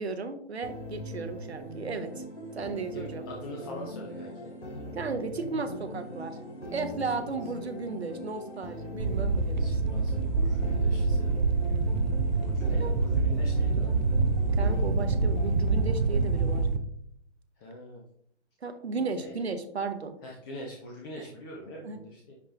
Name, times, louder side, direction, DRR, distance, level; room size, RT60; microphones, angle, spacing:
voice 1, 0.0-2.2 2.5-3.2 4.9-6.4 6.7-9.7 12.6-13.0 14.5-16.7 18.6-20.2 21.2-21.3 21.8-22.1, right 4 dB, 65° right, 8 dB, 1.0 m, -35 dB
sound 1, 0.6-16.6, equal, 75° left, 2.4 m, -41 dB
voice 2, 2.9-4.5 9.6-11.3 12.4-14.0 17.6-18.0 19.2-19.3 20.2-22.3, left 1 dB, 20° left, -2 dB, 0.7 m, -43 dB
sound 2, 9.0-16.8, right 3 dB, 40° right, 0.6 m, -26 dB
9.7 x 3.3 x 3.4 m, 0.70 s
figure-of-eight pair, 125°, 34 cm